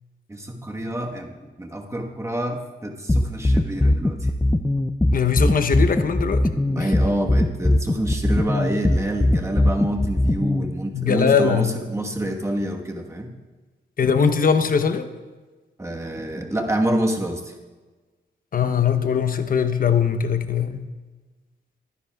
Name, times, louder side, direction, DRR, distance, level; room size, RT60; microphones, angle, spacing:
voice 1, 0.3-4.3 6.7-13.3 15.8-17.5, right 1 dB, 15° right, 1 dB, 1.3 m, -27 dB
sound 1, 3.1-10.7, left 1 dB, 10° left, 0.4 m, -19 dB
voice 2, 5.1-6.4 6.8-6.9 10.9-11.7 14.0-15.1 18.5-20.8, left 6 dB, 50° left, 9 dB, 0.8 m, -21 dB
23.0 x 9.8 x 2.3 m, 1.3 s
wide cardioid pair, 120°, 19 cm